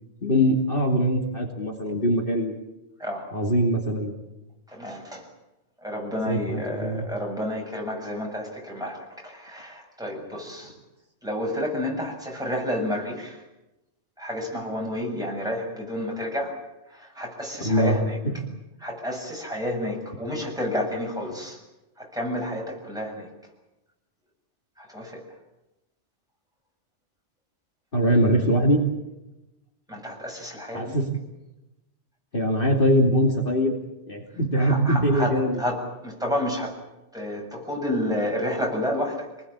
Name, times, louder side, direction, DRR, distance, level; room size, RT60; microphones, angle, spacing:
voice 1, 0.2-2.5 3.3-4.1 6.3-7.1 17.6-18.0 18.2-18.5 27.9-28.8 30.7-31.1 32.3-33.8 34.1-35.6, equal, 50° left, 0 dB, 2.9 m, -22 dB
voice 2, 4.7-5.3 5.8-10.7 11.2-13.4 14.2-16.5 16.9-18.2 18.8-21.6 22.0-23.3 24.8-25.2 29.9-31.0 34.6-36.8 37.1-39.3, left 1 dB, 5° right, -1 dB, 7.2 m, -30 dB
27.0 x 20.0 x 8.8 m, 0.99 s
omnidirectional pair, 1.2 m